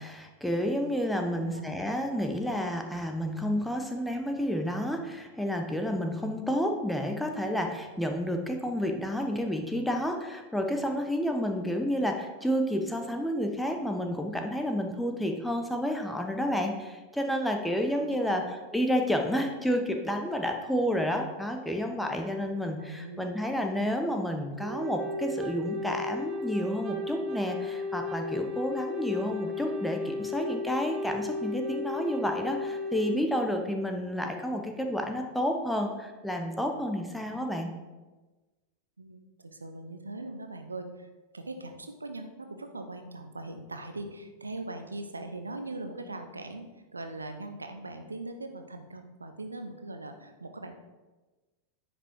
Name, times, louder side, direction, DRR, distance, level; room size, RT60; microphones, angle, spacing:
voice 1, 0.0-37.7, equal, 5° left, 3 dB, 1.0 m, -30 dB
voice 2, 1.3-1.7 17.9-18.5 22.8-23.3 39.0-41.1 41.3-50.7, right 2 dB, 80° right, 6 dB, 0.7 m, -41 dB
Wind instrument woodwind instrument, 24.6-33.2, left 2 dB, 30° right, 0.9 m, -34 dB
9.8 x 5.3 x 4.6 m, 1.2 s
figure-of-eight pair, 90°, 0 cm